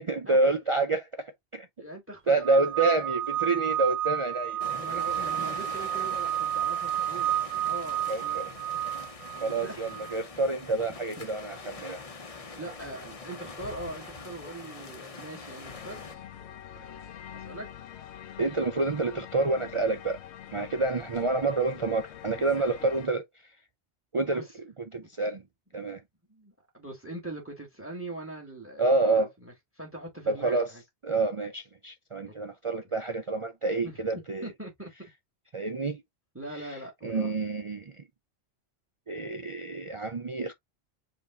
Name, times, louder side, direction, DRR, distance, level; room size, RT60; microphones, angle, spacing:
voice 1, 0.0-1.7 2.3-4.6 8.1-8.5 9.4-12.0 18.4-20.2 20.5-23.2 24.1-24.4 24.9-25.4 25.7-26.0 28.8-29.3 30.3-30.7 31.0-34.4 35.5-36.0 36.5-37.9 39.1-40.5, right 3 dB, 45° right, 0.4 m, -28 dB
voice 2, 1.8-2.4 4.8-8.6 9.3-9.8 11.2-11.3 12.6-16.2 16.7-17.1 17.3-17.7 22.6-22.8 24.3-24.6 25.0-25.1 25.9-26.0 26.3-30.8 32.2-32.3 33.8-34.0 34.4-34.9 36.3-37.3, right 1 dB, 10° right, 1.7 m, -42 dB
sound 1, 2.4-10.2, right 12 dB, 85° right, 0.9 m, -31 dB
sound 2, 4.6-16.1, left 4 dB, 35° left, 0.8 m, -43 dB
sound 3, 15.6-23.1, left 10 dB, 80° left, 0.9 m, -45 dB
5.1 x 2.6 x 3.8 m
omnidirectional pair, 1.2 m